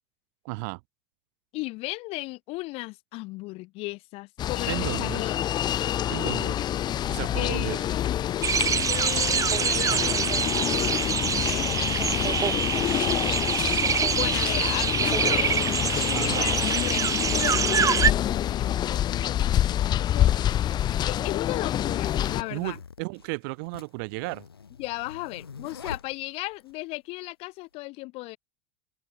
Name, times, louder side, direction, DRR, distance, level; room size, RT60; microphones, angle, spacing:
voice 1, 0.5-0.8 4.7-5.2 6.1-6.6 7.1-7.8 16.1-16.5 22.5-24.4, right 32 dB, 60° right, 1.9 m, -33 dB
voice 2, 1.5-5.4 7.4-8.1 8.6-12.4 14.1-20.8 21.0-22.8 24.8-28.4, left 22 dB, 55° left, 6.4 m, -36 dB
sound 1, 4.4-22.4, left 11 dB, 35° left, 0.8 m, -27 dB
sound 2, 8.4-18.1, right 7 dB, 25° right, 1.6 m, -25 dB
sound 3, 19.3-19.4 20.3-26.8, left 6 dB, 85° left, 4.3 m, -45 dB
open air
figure-of-eight pair, 80°, 12 cm